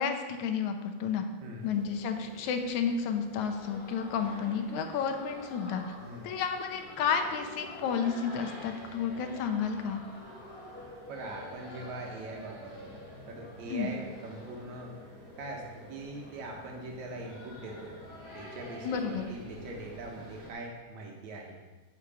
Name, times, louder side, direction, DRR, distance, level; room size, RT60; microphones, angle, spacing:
voice 1, 0.0-1.2 1.6-6.0 6.2-10.0 13.7-13.9 18.8-19.3, left 6 dB, 80° left, 6 dB, 2.4 m, -31 dB
voice 2, 1.4-1.7 6.0-6.4 11.1-13.0 13.3-15.0 15.4-15.6 15.9-18.0 18.3-21.6, right 2 dB, 75° right, 0 dB, 2.6 m, -42 dB
sound 1, 1.6-20.5, left 1 dB, 20° left, 4.1 m, -47 dB
10.0 x 6.5 x 7.0 m, 1.2 s
omnidirectional pair, 3.3 m